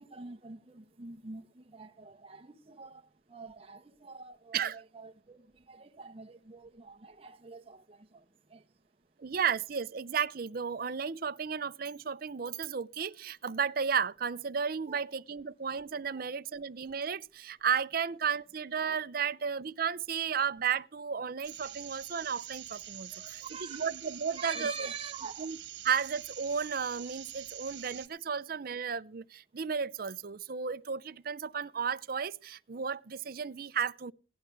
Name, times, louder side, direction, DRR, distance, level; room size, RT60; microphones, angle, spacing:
voice 1, 0.0-8.8 9.2-9.3 14.9-15.1 16.1-16.3 23.1-23.9 24.3-25.5, right 4 dB, 30° right, 1.0 m, -46 dB
voice 2, 9.2-24.9 25.4-25.6 25.8-34.1, right 6 dB, 50° right, 0.6 m, -33 dB
sound 1, 21.4-28.1, right 12 dB, 70° right, 1.5 m, -45 dB
17.0 x 11.0 x 3.3 m
head